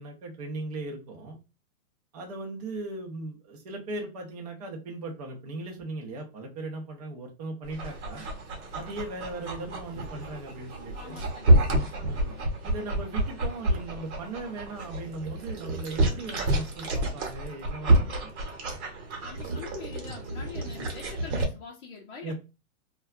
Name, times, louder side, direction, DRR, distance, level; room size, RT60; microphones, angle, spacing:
voice 1, 0.0-1.4 2.1-8.2 8.7-11.2 12.0-12.4 12.6-18.3 22.2-22.3, right 2 dB, 30° right, 1 dB, 0.5 m, -38 dB
Dog, 7.6-21.4, right 1 dB, 50° right, 0.9 m, -28 dB
voice 2, 10.9-12.5 19.2-22.3, left 5 dB, 45° left, -3 dB, 0.6 m, -45 dB
2.6 x 2.2 x 2.3 m, 0.29 s
supercardioid pair, 170°, 44 cm